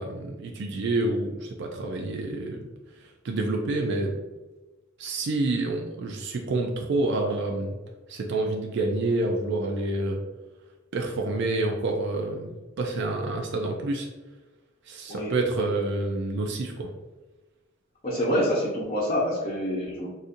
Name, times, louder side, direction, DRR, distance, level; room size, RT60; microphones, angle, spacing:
voice 1, 0.0-2.6 3.2-4.2 5.0-7.8 8.1-10.2 10.9-14.1 14.9-16.9, right 2 dB, 60° right, 2 dB, 0.4 m, -28 dB
voice 2, 18.0-20.1, equal, 30° left, -8 dB, 0.7 m, -26 dB
4.0 x 2.5 x 2.5 m, 1.2 s
head